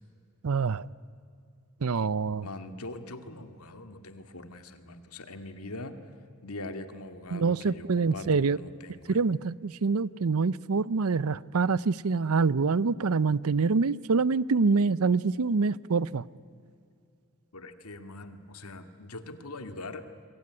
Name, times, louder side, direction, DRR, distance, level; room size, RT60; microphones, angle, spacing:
voice 1, 0.4-0.9 1.8-2.5 7.3-8.6 9.1-16.3, right 4 dB, 75° right, 21 dB, 0.6 m, -26 dB
voice 2, 2.4-6.0 6.4-9.2 17.5-20.3, left 2 dB, 85° left, 9 dB, 2.1 m, -42 dB
27.0 x 22.5 x 9.7 m, 2.4 s
head